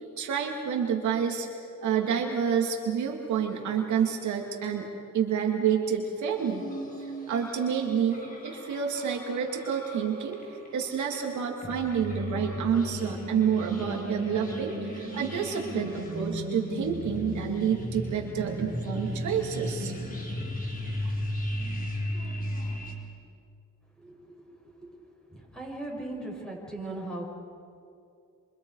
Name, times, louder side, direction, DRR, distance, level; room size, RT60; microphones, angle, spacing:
voice 1, 0.2-1.5 1.8-4.9 5.1-6.7 7.3-10.4 10.7-19.9, right 7 dB, 70° right, 1 dB, 2.6 m, -28 dB
sound 1, 6.4-22.9, equal, 30° left, 4.1 m, -35 dB
voice 2, 24.5-25.0 25.3-27.3, right 2 dB, ahead, -2 dB, 7.4 m, -38 dB
27.5 x 26.5 x 4.9 m, 2.5 s
cardioid pair, 90°, 30 cm